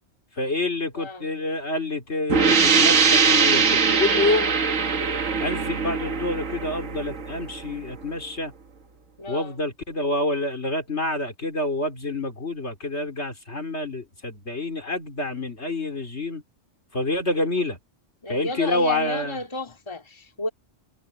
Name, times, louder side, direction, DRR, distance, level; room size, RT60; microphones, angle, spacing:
voice 1, 0.4-4.5 5.4-8.5 9.3-16.4 16.9-17.8 18.3-19.4, left 2 dB, 60° left, 3.9 m, -27 dB
voice 2, 0.9-1.4 9.2-9.6 18.2-20.5, left 2 dB, 20° left, 2.4 m, -32 dB
sound 1, 2.3-7.8, right 5 dB, 85° right, 1.8 m, -21 dB
omnidirectional pair, 1.3 m